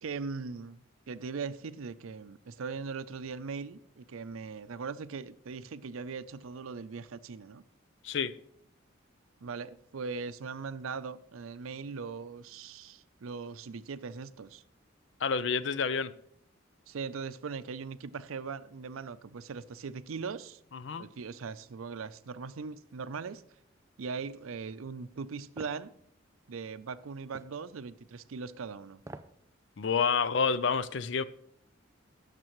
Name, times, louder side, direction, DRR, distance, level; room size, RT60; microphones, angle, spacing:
voice 1, 0.0-7.6 9.4-14.6 16.9-20.6 21.0-23.4 24.0-25.9 26.5-29.0, right 5 dB, 90° right, 0.5 m, -40 dB
voice 2, 8.0-8.4 15.2-16.1 20.7-21.1 29.8-31.2, left 5 dB, 65° left, 0.5 m, -29 dB
sound 1, 25.6-25.8 27.3-27.6 29.0-29.4 29.8-29.9, right 2 dB, 15° right, 0.3 m, -46 dB
17.0 x 6.7 x 3.1 m
head